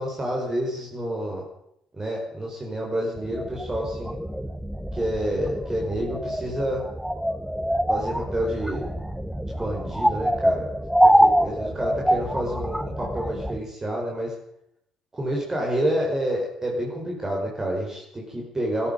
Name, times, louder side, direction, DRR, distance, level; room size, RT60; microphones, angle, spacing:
voice 1, 0.0-1.5 1.9-4.2 4.9-6.8 7.9-8.9 9.4-10.7 11.2-14.3 15.1-18.9, equal, 20° right, -1 dB, 4.9 m, -28 dB
sound 1, 3.2-13.6, equal, ahead, 1.1 m, -25 dB
21.0 x 11.5 x 5.3 m, 0.76 s
figure-of-eight pair, 50°, 2 cm